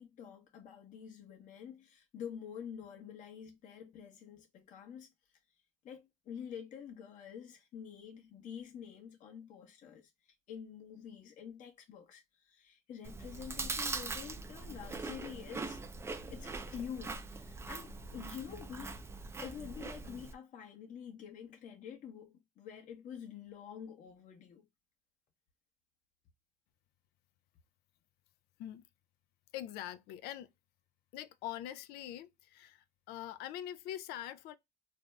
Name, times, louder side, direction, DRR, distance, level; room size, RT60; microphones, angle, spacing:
voice 1, 0.0-5.1 5.8-10.1 10.5-15.8 16.3-19.0 19.4-24.6, left 8 dB, 50° left, 0.8 m, -48 dB
Chewing mastication, 13.0-20.3, right 3 dB, 15° right, 0.4 m, -42 dB
voice 2, 29.5-30.5 31.1-34.5, left 12 dB, 70° left, 0.4 m, -43 dB
2.6 x 2.1 x 3.2 m
cardioid pair, 115°, 17 cm